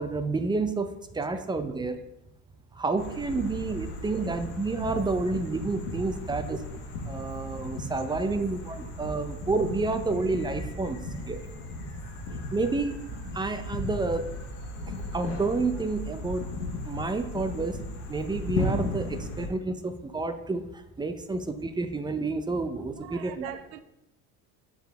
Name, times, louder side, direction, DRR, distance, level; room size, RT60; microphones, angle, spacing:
voice 1, 0.0-2.0 2.7-6.6 7.1-11.0 11.3-11.4 12.5-13.0 13.3-14.3 15.1-16.5 16.8-17.8 18.1-23.5, right 3 dB, 10° right, 0.4 m, -29 dB
voice 2, 1.3-2.1 5.0-5.4 5.9-6.3 8.1-8.4 9.2-9.4 23.0-23.8, right 10 dB, 85° right, 0.7 m, -45 dB
sound 1, 3.0-19.5, left 1 dB, 85° left, 1.6 m, -36 dB
7.5 x 4.7 x 3.4 m
supercardioid pair, 90°, 48 cm